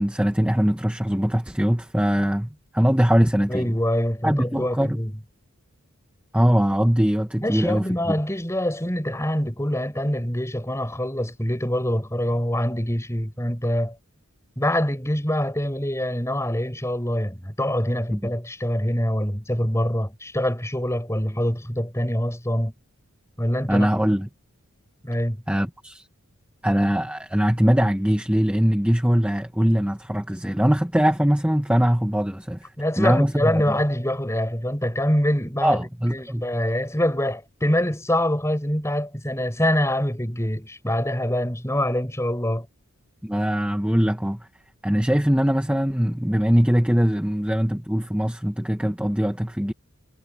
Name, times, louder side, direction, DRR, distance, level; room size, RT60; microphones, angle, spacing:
voice 1, 0.0-3.7 4.2-5.0 6.3-7.9 18.1-18.2 23.7-24.3 25.5-26.1 26.6-33.8 35.6-36.5 43.2-44.5 44.8-49.7, equal, 5° right, 1.3 m, -22 dB
voice 2, 3.5-5.1 7.4-13.9 14.6-22.7 23.4-23.9 25.0-25.4 32.8-42.7, left 1 dB, 15° left, 6.6 m, -25 dB
head